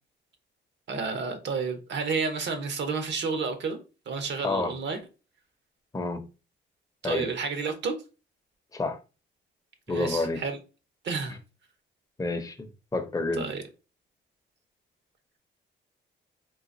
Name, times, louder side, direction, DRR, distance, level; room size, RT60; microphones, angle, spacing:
voice 1, 0.9-3.8 4.1-5.0 7.0-7.9 9.9-10.6 11.0-11.4 13.4-13.6, right 4 dB, 65° right, 0.8 m, -30 dB
voice 2, 9.9-10.4 12.2-13.5, left 3 dB, 15° left, 0.6 m, -29 dB
3.9 x 2.5 x 2.5 m
cardioid pair, 90°, 20 cm